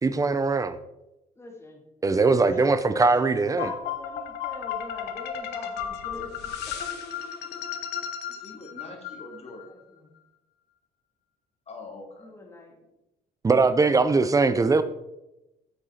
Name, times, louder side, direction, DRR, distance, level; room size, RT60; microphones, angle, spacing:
voice 1, 0.0-0.8 2.0-3.7 13.4-14.8, right 3 dB, 20° right, 13 dB, 0.7 m, -21 dB
voice 2, 1.4-7.0 9.6-10.1 12.2-12.9, left 2 dB, 15° left, 2 dB, 2.2 m, -43 dB
sound 1, 3.6-9.7, left 8 dB, 80° left, 1.2 m, -34 dB
voice 3, 8.3-9.6 11.7-12.3, left 3 dB, 40° left, 1 dB, 2.8 m, -43 dB
8.8 x 8.1 x 4.3 m, 0.91 s
cardioid pair, 110°, 17 cm